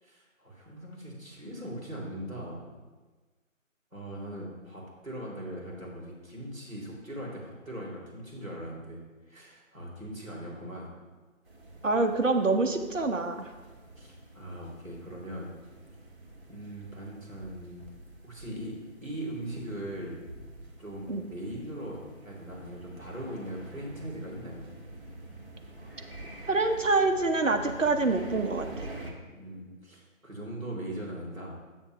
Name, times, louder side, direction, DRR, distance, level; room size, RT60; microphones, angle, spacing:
voice 1, 0.0-2.6 3.9-10.9 13.9-15.5 16.5-17.8 18.2-18.7 19.0-20.2 20.8-24.7 29.3-31.5, right 1 dB, ahead, -33 dB, 1.1 m, -40 dB
sound 1, 11.4-29.1, right 2 dB, 40° right, 1.8 m, -47 dB
voice 2, 11.8-13.4 21.1-21.2 26.5-28.9, right 3 dB, 65° right, 6 dB, 0.9 m, -26 dB
8.0 x 7.2 x 3.3 m, 1.3 s
figure-of-eight pair, 160°, 41 cm